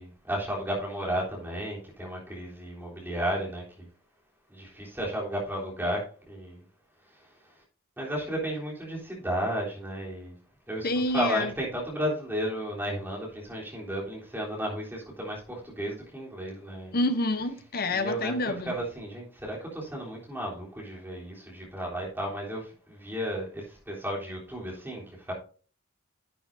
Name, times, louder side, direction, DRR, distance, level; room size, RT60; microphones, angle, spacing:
voice 1, 0.0-3.9 4.5-6.6 8.0-10.4 10.7-17.0 17.9-25.3, equal, 10° right, 3.5 m, -33 dB
voice 2, 10.8-11.5 16.9-18.8, left 2 dB, 45° left, 0.9 m, -28 dB
10.5 x 9.1 x 2.7 m
head